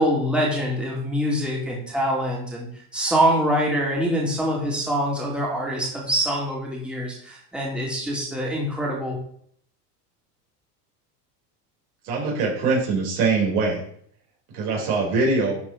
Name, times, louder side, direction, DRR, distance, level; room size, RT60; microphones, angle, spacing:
voice 1, 0.0-9.2, equal, ahead, -4 dB, 2.8 m, -24 dB
voice 2, 12.0-13.8 14.5-15.6, right 3 dB, 70° right, -2 dB, 4.1 m, -22 dB
11.5 x 4.8 x 4.0 m, 0.63 s
supercardioid pair, 100°, 48 cm